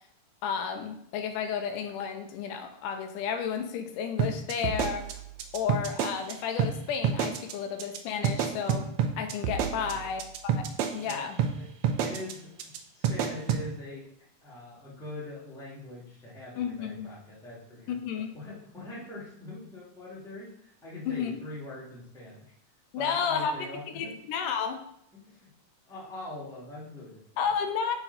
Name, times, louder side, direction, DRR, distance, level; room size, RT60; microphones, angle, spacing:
voice 1, 0.4-5.2 5.5-10.6 10.9-11.4 16.6-17.1 17.9-18.4 21.1-21.4 22.9-23.7 24.0-24.8 27.4-27.9, left 7 dB, 85° left, 6 dB, 2.2 m, -32 dB
sound 1, 4.2-6.3 6.6-6.7 7.0-7.5 7.8-8.0 8.2-11.1 11.4-11.5 11.8-12.3 12.6-12.8 13.0-13.6, right 7 dB, 80° right, 1.7 m, -27 dB
voice 2, 9.7-10.1 11.0-11.2 11.5-11.7 12.0-18.0 18.3-22.5 22.9-24.1 25.1-25.5 25.9-27.4, left 2 dB, ahead, -8 dB, 1.4 m, -43 dB
5.8 x 4.6 x 4.0 m, 0.73 s
omnidirectional pair, 3.8 m